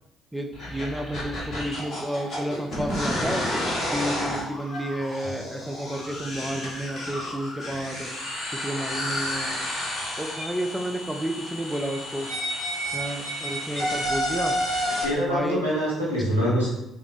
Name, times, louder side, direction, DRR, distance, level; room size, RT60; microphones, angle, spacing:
voice 1, 0.3-3.5 3.9-8.1 8.5-9.6 10.2-12.3 12.9-14.6 15.1-15.6, right 1 dB, 10° right, 4 dB, 0.5 m, -31 dB
sound 1, 0.5-15.0, equal, 50° left, 1.4 m, -31 dB
voice 2, 15.0-16.7, equal, 90° left, -7 dB, 1.4 m, -24 dB
3.6 x 2.9 x 3.6 m, 0.84 s
figure-of-eight pair, 45°, 0 cm